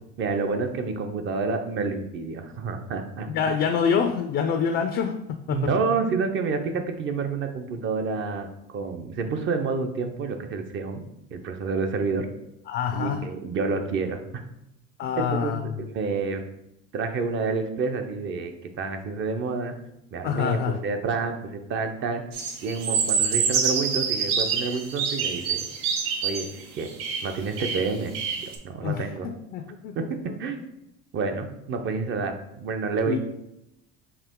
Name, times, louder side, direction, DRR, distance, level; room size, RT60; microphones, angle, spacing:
voice 1, 0.2-3.3 5.5-11.0 11.3-12.3 12.9-14.4 15.2-16.4 16.9-18.5 18.8-19.7 20.1-22.2 22.6-25.6 26.2-26.5 26.8-26.9 27.2-28.2 28.4-29.3 30.0-30.1 30.4-30.6 31.1-33.2, right 4 dB, 40° right, 6 dB, 0.6 m, -29 dB
voice 2, 3.3-5.2 5.5-5.6 12.7-13.2 15.0-15.6 20.2-20.8 28.8-29.9 30.3-30.4 33.0-33.2, left 7 dB, 40° left, 6 dB, 0.4 m, -26 dB
sound 1, 22.3-28.6, right 6 dB, 85° right, 0.8 m, -26 dB
4.8 x 2.9 x 3.6 m, 0.82 s
supercardioid pair, 120°, 29 cm